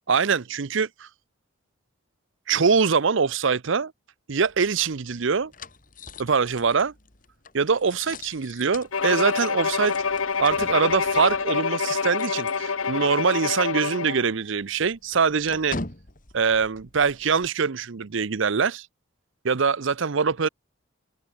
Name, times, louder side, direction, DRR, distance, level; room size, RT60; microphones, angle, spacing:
voice 1, 0.1-1.1 2.5-3.9 4.3-5.5 6.2-6.9 7.5-9.9 10.4-15.8 16.3-18.9 19.4-20.5, right 5 dB, 65° right, 0.7 m, -23 dB
sound 1, 4.4-13.2 13.5-13.7 14.0-17.5, left 2 dB, 40° left, 2.9 m, -43 dB
Bowed string instrument, 8.9-14.3, left 5 dB, 85° left, 1.1 m, -26 dB
open air
head